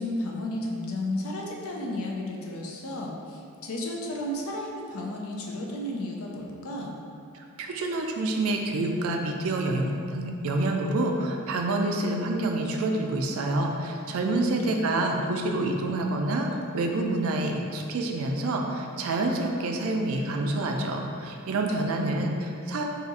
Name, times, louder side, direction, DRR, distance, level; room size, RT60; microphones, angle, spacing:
voice 1, 0.0-7.0 14.2-15.4 21.5-22.4, left 1 dB, 75° left, -1 dB, 0.5 m, -34 dB
voice 2, 7.3-22.8, right 2 dB, 75° right, 2 dB, 0.4 m, -27 dB
2.7 x 2.4 x 4.0 m, 2.4 s
head